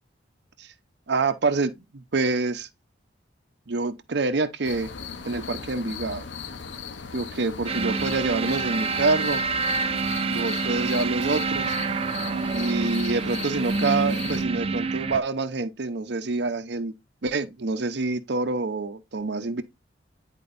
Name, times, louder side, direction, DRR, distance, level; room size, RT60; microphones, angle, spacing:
voice 1, 1.1-2.7 3.7-4.9 5.3-6.3 7.1-9.4 10.3-11.8 12.5-16.9 17.2-19.6, right 3 dB, 65° right, 0.8 m, -26 dB
sound 1, 4.6-14.5, left 6 dB, 85° left, 0.9 m, -37 dB
sound 2, 7.7-15.2, right 4 dB, 35° right, 0.5 m, -27 dB
10.5 x 4.5 x 2.6 m
head